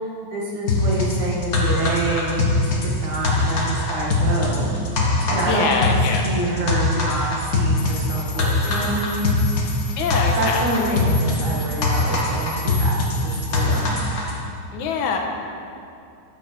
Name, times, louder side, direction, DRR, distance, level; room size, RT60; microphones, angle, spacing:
voice 1, 0.3-3.6 3.9-4.7 5.1-6.0 6.2-9.3 10.3-13.9, right 2 dB, 80° right, -4 dB, 3.6 m, -27 dB
sound 1, 0.7-14.4, left 2 dB, 40° left, 1.4 m, -22 dB
voice 2, 5.4-6.2 10.0-10.7 14.7-15.2, left 5 dB, 90° left, 2 dB, 2.6 m, -23 dB
sound 2, 7.8-13.8, left 3 dB, 60° left, 5.0 m, -39 dB
14.0 x 11.0 x 4.7 m, 2.6 s
omnidirectional pair, 3.3 m